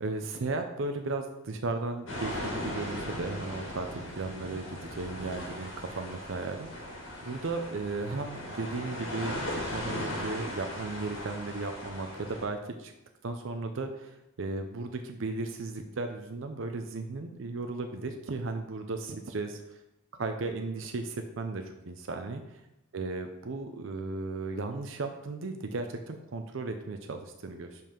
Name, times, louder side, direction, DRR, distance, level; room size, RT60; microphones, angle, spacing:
voice 1, 0.0-12.9 13.2-19.8 20.2-22.6 22.9-27.8, right 3 dB, 65° right, 6 dB, 0.5 m, -35 dB
sound 1, 2.1-12.5, left 1 dB, 65° left, 2.0 m, -38 dB
5.4 x 5.3 x 5.3 m, 0.89 s
head